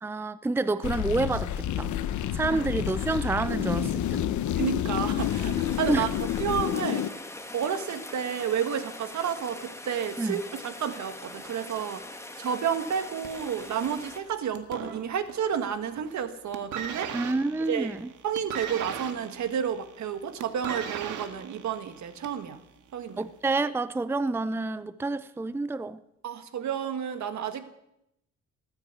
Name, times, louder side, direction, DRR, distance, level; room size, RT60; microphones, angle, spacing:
voice 1, 0.0-2.0 2.3-4.3 5.9-6.1 10.2-10.4 17.1-18.1 23.2-26.0, right 3 dB, 10° right, 0.5 m, -28 dB
sound 1, 0.8-7.1, left 11 dB, 70° left, 0.9 m, -29 dB
voice 2, 4.5-6.1 6.4-7.0 7.5-12.0 12.4-17.1 17.6-17.9 18.2-22.6 22.9-23.2 26.2-27.7, right 8 dB, 70° right, 1.7 m, -31 dB
Rain, 5.2-14.2, left 2 dB, 10° left, 1.9 m, -42 dB
sound 2, 13.2-15.6 15.9-16.2 16.5-22.5 23.3-23.4, right 7 dB, 85° right, 1.8 m, -38 dB
18.5 x 9.1 x 8.2 m
cardioid pair, 90°, 30 cm